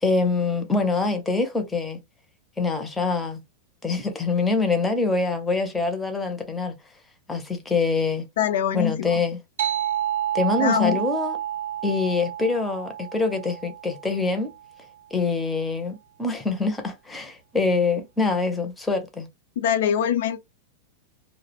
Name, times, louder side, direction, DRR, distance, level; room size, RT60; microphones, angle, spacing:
voice 1, 0.0-2.0 2.6-3.4 3.8-6.7 7.3-8.2 8.7-9.4 10.3-11.4 11.8-14.5 15.1-19.3, left 3 dB, 10° left, 0.5 m, -25 dB
voice 2, 8.4-9.2 10.6-11.0 19.6-20.4, left 9 dB, 70° left, 0.3 m, -23 dB
sound 1, 9.6-14.6, right 11 dB, 75° right, 0.5 m, -29 dB
2.4 x 2.0 x 2.8 m
supercardioid pair, 150°, 0 cm